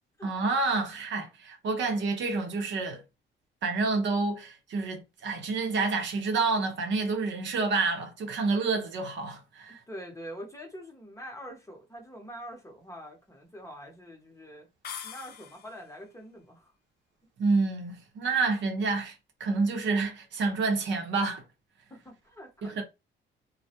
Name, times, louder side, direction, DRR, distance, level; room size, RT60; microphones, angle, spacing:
voice 1, 0.2-3.0 3.6-9.8 17.4-19.1 19.4-21.4 22.6-22.8, right 3 dB, 65° right, 0.7 m, -28 dB
voice 2, 9.7-14.7 15.0-16.7 21.9-22.8, equal, 15° left, 0.8 m, -45 dB
sound 1, 14.8-15.9, left 8 dB, 55° left, 0.4 m, -42 dB
2.1 x 2.0 x 2.8 m
cardioid pair, 90°, 20 cm